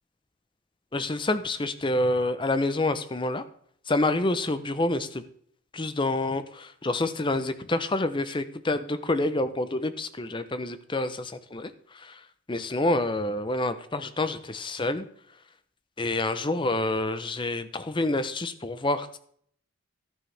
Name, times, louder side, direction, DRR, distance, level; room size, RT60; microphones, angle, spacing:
voice 1, 0.9-3.4 3.9-5.2 5.7-11.7 12.0-12.1 12.5-15.1 16.0-19.2, left 2 dB, 20° left, 12 dB, 0.6 m, -27 dB
12.0 x 10.0 x 3.3 m, 0.64 s
head